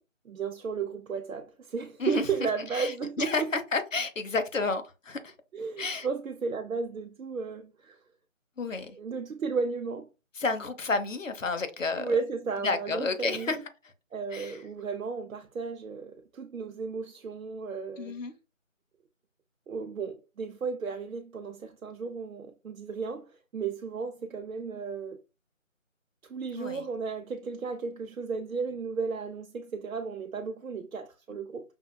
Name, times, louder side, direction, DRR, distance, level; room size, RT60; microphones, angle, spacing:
voice 1, 0.3-3.5 5.5-8.0 9.0-10.1 11.9-13.6 14.1-18.1 19.7-25.2 26.2-31.6, right 5 dB, 85° right, 0.6 m, -34 dB
voice 2, 2.7-5.3 5.8-6.1 8.6-9.0 10.4-12.1 12.6-13.6 14.3-14.6 18.0-18.3 26.6-26.8, left 3 dB, 70° left, 0.8 m, -31 dB
5.5 x 2.2 x 2.2 m
figure-of-eight pair, 170°, 40 cm